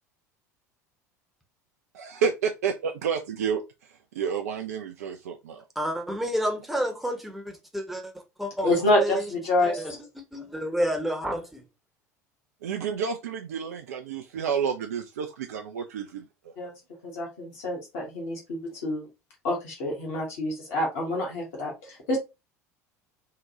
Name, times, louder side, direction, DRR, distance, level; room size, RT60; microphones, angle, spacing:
voice 1, 1.9-5.6 12.6-16.7, right 6 dB, 65° right, 0.4 m, -30 dB
voice 2, 5.8-8.1 8.4-8.7 9.0-9.2 9.6-9.9 10.3-11.6, equal, ahead, 0.8 m, -29 dB
voice 3, 8.6-10.0 16.6-16.7 17.0-19.1 19.4-22.2, left 1 dB, 55° left, 1.2 m, -27 dB
3.6 x 2.2 x 2.8 m
figure-of-eight pair, 70°, 9 cm